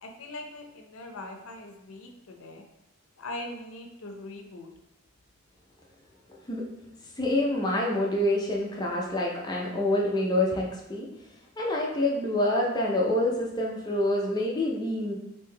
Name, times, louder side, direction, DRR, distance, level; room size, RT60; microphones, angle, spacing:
voice 1, 0.0-2.6 3.2-4.7, left 2 dB, 70° left, 3 dB, 0.6 m, -41 dB
voice 2, 6.3-6.7 7.2-11.1 11.6-15.1, left 1 dB, 20° left, -2 dB, 0.4 m, -27 dB
3.6 x 2.7 x 3.2 m, 0.90 s
head